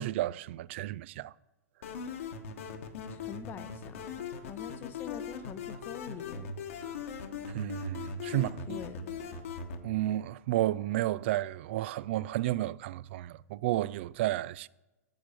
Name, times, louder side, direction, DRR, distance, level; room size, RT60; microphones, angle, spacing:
voice 1, 0.0-1.3 7.5-8.8 9.8-14.7, right 15 dB, 45° right, 0.4 m, -32 dB
sound 1, 1.8-9.8, left 5 dB, 55° left, 1.3 m, -40 dB
voice 2, 3.1-6.5 8.3-9.3, left 8 dB, 25° left, 0.7 m, -45 dB
9.2 x 7.4 x 6.7 m
figure-of-eight pair, 105°, 8 cm